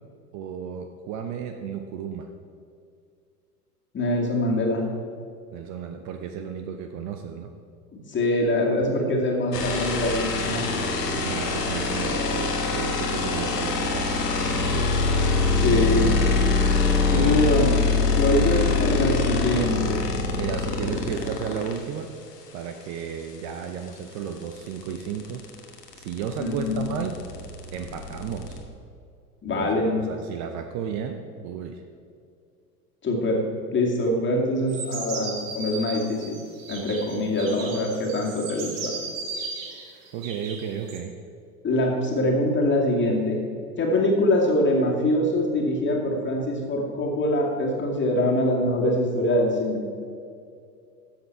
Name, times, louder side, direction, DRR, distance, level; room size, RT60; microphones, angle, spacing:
voice 1, 0.3-2.3 5.5-7.5 8.9-9.2 11.2-14.9 16.9-17.4 20.3-22.1 22.5-25.5 25.9-27.2 27.7-28.6 29.5-31.8 40.1-41.2, right 7 dB, 35° right, 6 dB, 0.7 m, -33 dB
voice 2, 3.9-4.8 7.9-10.6 11.1-11.2 15.5-16.2 17.1-17.8 18.1-20.0 26.4-26.8 29.4-30.1 33.0-36.4 36.7-38.9 41.6-43.4 43.8-49.8, left 1 dB, 25° left, -1 dB, 2.2 m, -24 dB
sound 1, 9.5-21.8 23.9-24.0 24.2-28.6, left 3 dB, 75° left, 1.5 m, -24 dB
sound 2, 34.7-41.0, right 4 dB, 55° right, 1.9 m, -36 dB
13.0 x 7.7 x 4.7 m, 2.4 s
figure-of-eight pair, 80°, 48 cm